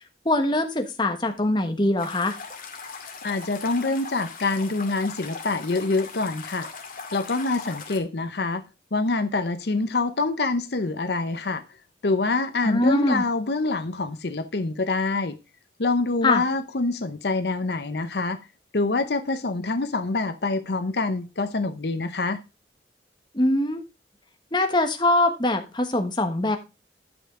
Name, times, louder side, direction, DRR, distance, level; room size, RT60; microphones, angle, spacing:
voice 1, 0.2-2.4 12.6-13.2 16.2-16.4 23.3-23.8 24.5-26.6, left 1 dB, 25° left, 1.2 m, -22 dB
sound 1, 2.0-8.0, left 4 dB, 50° left, 2.2 m, -39 dB
voice 2, 3.2-6.7 7.1-8.6 8.9-11.6 12.0-15.4 15.8-18.4 18.7-22.4, left 3 dB, 65° left, 0.8 m, -26 dB
11.5 x 5.8 x 3.7 m
head